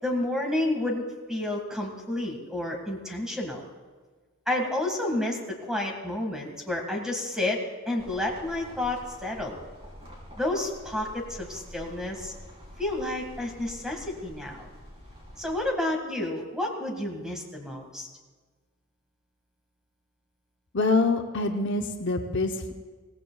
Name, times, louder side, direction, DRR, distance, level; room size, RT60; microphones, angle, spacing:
voice 1, 0.0-3.7 4.5-7.6 7.9-9.6 10.4-12.3 12.8-14.7 15.4-18.1, left 1 dB, 5° right, 1 dB, 1.8 m, -30 dB
sound 1, 8.0-15.6, equal, 25° right, 4.0 m, -47 dB
voice 2, 20.7-22.7, left 3 dB, 55° left, 4 dB, 0.8 m, -25 dB
23.0 x 17.5 x 2.3 m, 1.4 s
head